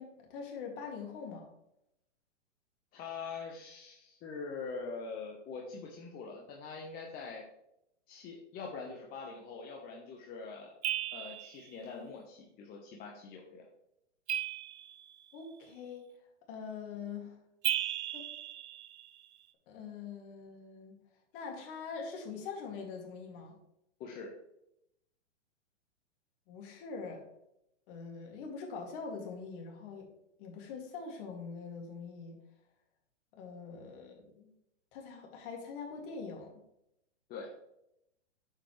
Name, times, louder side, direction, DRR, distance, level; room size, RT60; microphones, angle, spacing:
voice 1, 0.0-1.5 15.3-16.1 16.5-17.4 18.1-18.2 19.7-21.0 21.3-23.5 26.5-27.2 27.9-30.1 30.4-32.4 33.3-34.5 34.9-36.5, left 5 dB, 45° left, 1 dB, 2.5 m, -43 dB
voice 2, 2.9-7.4 8.1-10.7 11.1-13.6 24.0-24.3 37.3-37.5, left 4 dB, 25° left, -1 dB, 1.2 m, -43 dB
sound 1, 10.8-11.7 14.3-15.3 17.6-19.3, right 11 dB, 65° right, 0.9 m, -36 dB
8.9 x 7.1 x 3.2 m, 0.81 s
hypercardioid pair, 130°, 37 cm